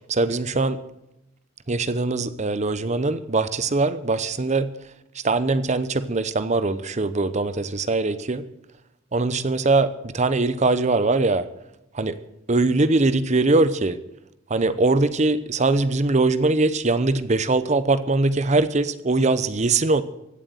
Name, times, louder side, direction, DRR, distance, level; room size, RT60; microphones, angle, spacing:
voice 1, 0.1-0.8 1.7-4.7 5.1-8.4 9.1-11.5 11.9-12.2 12.5-14.0 14.5-20.0, right 3 dB, 35° right, 13 dB, 0.8 m, -21 dB
16.0 x 7.9 x 9.3 m, 0.87 s
head